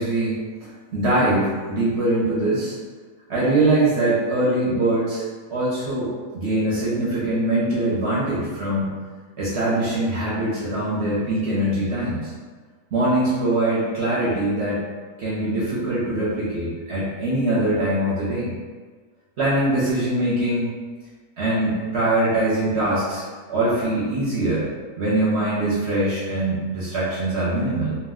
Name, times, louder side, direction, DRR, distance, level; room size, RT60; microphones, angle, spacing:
voice 1, 0.0-2.8 3.3-5.2 5.5-6.1 6.3-8.9 9.4-12.3 12.9-14.8 15.2-18.5 19.4-20.7 21.4-23.2 23.5-24.7 25.0-28.0, right 1 dB, 55° right, -8 dB, 1.0 m, -22 dB
2.6 x 2.2 x 3.5 m, 1.5 s
omnidirectional pair, 1.5 m